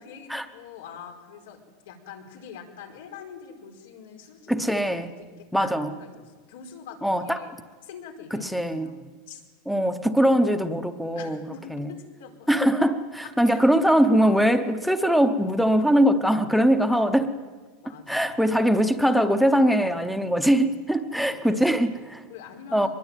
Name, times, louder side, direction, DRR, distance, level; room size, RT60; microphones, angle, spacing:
voice 1, 0.0-1.6 1.8-4.8 5.2-7.5 7.8-9.4 11.1-12.5 13.4-13.6 17.0-17.1 17.8-18.6 21.2-21.4 21.7-21.9 22.3-22.9, left 7 dB, 90° left, 3 dB, 4.8 m, -44 dB
voice 2, 4.5-5.1 5.5-5.9 7.0-7.5 8.3-8.9 9.7-11.4 11.7-11.9 12.5-17.3 18.1-22.2 22.7-22.9, equal, ahead, 9 dB, 0.8 m, -22 dB
24.0 x 21.0 x 9.1 m, 1.4 s
supercardioid pair, 175°, 0 cm